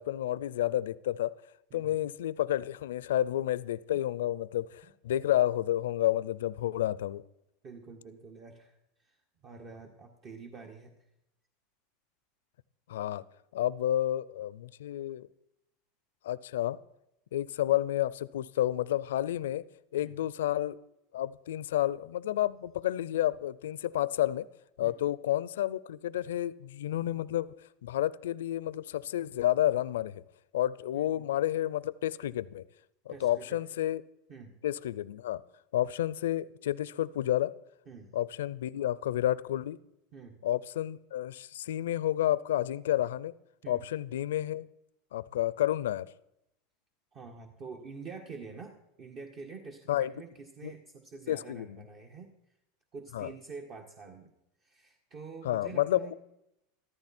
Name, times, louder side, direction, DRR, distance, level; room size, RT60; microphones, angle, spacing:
voice 1, 0.0-1.3 1.7-7.2 12.9-13.2 13.5-15.3 16.2-16.8 17.3-19.6 19.9-20.8 21.1-24.5 24.8-27.5 27.8-30.2 30.5-32.6 33.1-34.0 34.6-35.4 35.7-37.5 38.1-39.8 40.4-43.3 43.7-44.7 45.1-46.1 49.9-50.1 50.6-50.7 51.3-51.8 53.1-53.3 55.4-56.1, left 13 dB, 85° left, 0.5 m, -30 dB
voice 2, 1.7-2.1 3.9-4.0 7.6-9.2 9.4-10.9 20.0-20.2 24.8-25.1 30.9-31.2 33.1-33.6 34.3-34.6 37.9-38.1 40.1-40.4 43.6-43.8 47.1-52.3 52.9-54.3 54.6-56.1, right 4 dB, 45° right, 1.7 m, -47 dB
14.0 x 13.5 x 4.4 m
hypercardioid pair, 105°, 0 cm